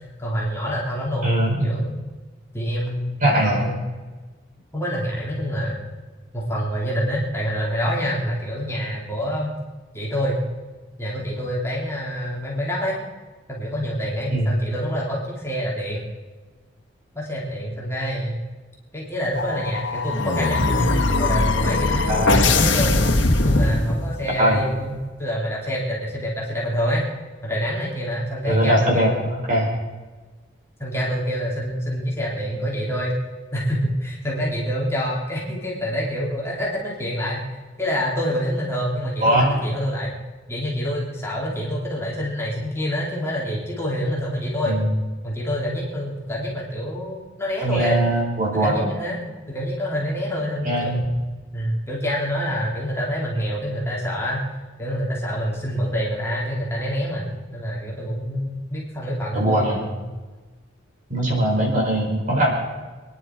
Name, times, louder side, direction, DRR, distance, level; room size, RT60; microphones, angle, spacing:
voice 1, 0.2-1.3 1.6-2.0 2.5-3.8 4.7-5.8 6.3-9.5 9.9-10.4 11.0-13.0 13.5-16.0 17.1-18.4 18.9-23.0 23.4-24.9 25.2-27.0 27.4-29.3 29.5-29.7 30.8-33.2 33.5-37.4 37.8-40.1 40.5-44.8 45.2-48.0 48.6-51.1 51.5-54.5 54.8-59.8, equal, 15° left, -4 dB, 2.9 m, -26 dB
voice 2, 1.2-1.7 3.2-3.6 14.3-14.5 22.1-22.4 24.4-24.6 28.5-29.1 29.5-29.7 39.2-39.5 44.6-45.0 47.6-48.9 50.6-51.0 59.3-59.8 61.1-62.5, right 1 dB, 45° right, -3 dB, 4.9 m, -20 dB
sound 1, 19.3-24.4, left 2 dB, 75° left, 1.5 m, -21 dB
26.0 x 10.5 x 4.5 m, 1.3 s
head